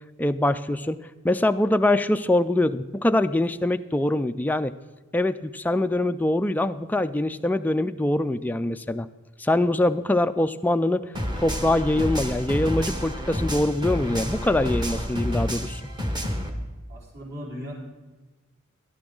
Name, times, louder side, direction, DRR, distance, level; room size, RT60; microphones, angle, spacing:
voice 1, 0.2-4.7 5.1-9.1 9.4-11.1 11.4-15.8, left 1 dB, 10° left, 8 dB, 0.3 m, -23 dB
sound 1, 11.1-16.5, equal, 20° right, 1.3 m, -29 dB
voice 2, 16.9-17.7, equal, 50° right, -4 dB, 4.6 m, -37 dB
18.0 x 12.5 x 3.8 m, 1.2 s
head